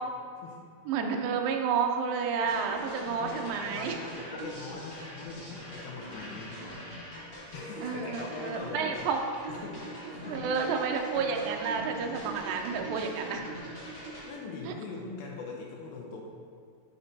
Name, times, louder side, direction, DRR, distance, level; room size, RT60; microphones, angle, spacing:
voice 1, 0.9-4.0 7.8-9.2 10.3-13.5 14.6-14.7, right 6 dB, 75° right, 2 dB, 2.2 m, -30 dB
sound 1, 2.4-14.3, right 1 dB, 25° left, 1.2 m, -42 dB
voice 2, 3.2-6.6 7.5-9.1 9.5-10.4 14.3-16.2, left 4 dB, 75° left, -1 dB, 2.5 m, -41 dB
12.0 x 6.6 x 2.8 m, 2.2 s
omnidirectional pair, 4.5 m